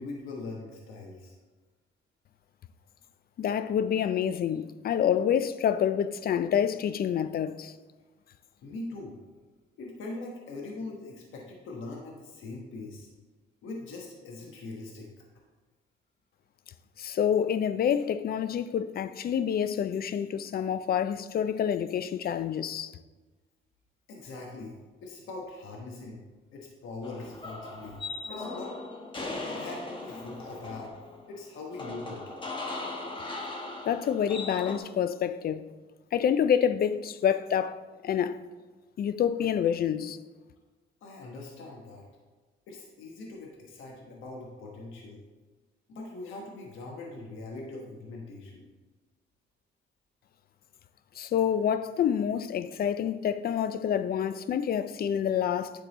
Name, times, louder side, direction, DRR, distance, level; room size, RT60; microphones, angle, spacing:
voice 1, 0.0-1.3 8.6-9.2 9.8-13.1 13.6-15.1 24.1-26.2 26.5-28.0 28.3-28.7 29.5-31.0 31.3-32.2 41.0-42.0 42.7-45.2 45.9-48.6, left 2 dB, 80° left, 1.2 m, -41 dB
voice 2, 3.4-7.7 17.0-22.9 33.9-35.7 36.1-38.4 39.0-40.2 51.2-55.7, left 8 dB, 50° left, 0.4 m, -27 dB
sound 1, 27.0-34.8, left 2 dB, 25° left, 1.1 m, -38 dB
10.0 x 3.9 x 4.0 m
cardioid pair, 90°, 20 cm